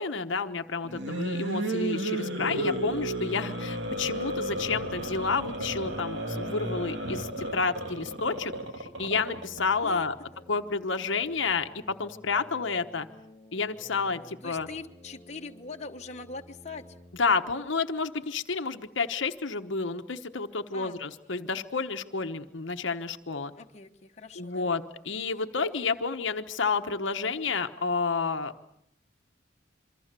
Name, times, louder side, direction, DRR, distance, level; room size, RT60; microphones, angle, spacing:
voice 1, 0.0-8.5 8.8-10.1 10.5-13.1 13.5-14.7 17.2-23.5 24.4-28.5, left 4 dB, 70° left, 7 dB, 1.1 m, -30 dB
sound 1, 0.8-9.6, right 1 dB, 60° right, 2.6 m, -33 dB
sound 2, 6.0-17.3, left 1 dB, 15° left, 2.7 m, -53 dB
voice 2, 14.4-17.0 20.7-21.0 23.5-24.9, left 3 dB, 35° left, 3 dB, 1.3 m, -42 dB
27.5 x 23.5 x 6.8 m, 0.76 s
head